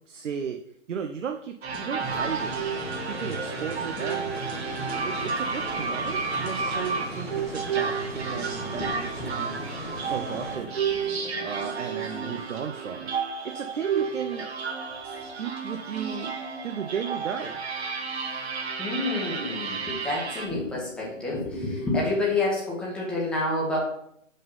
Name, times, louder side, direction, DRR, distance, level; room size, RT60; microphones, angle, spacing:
voice 1, 0.1-0.6 0.9-2.5 3.1-10.8 11.4-13.1 13.4-14.5 15.0-17.6, right 7 dB, 65° right, 6 dB, 0.8 m, -35 dB
sound 1, 1.6-20.5, right 5 dB, 50° right, 1.7 m, -32 dB
sound 2, 1.7-12.4, left 4 dB, 60° left, 1.1 m, -44 dB
sound 3, 2.0-10.6, right 1 dB, 15° right, 1.7 m, -39 dB
voice 2, 8.5-9.3 18.8-23.8, left 2 dB, ahead, -5 dB, 1.1 m, -29 dB
5.6 x 5.4 x 5.5 m, 0.71 s
hypercardioid pair, 150°, 39 cm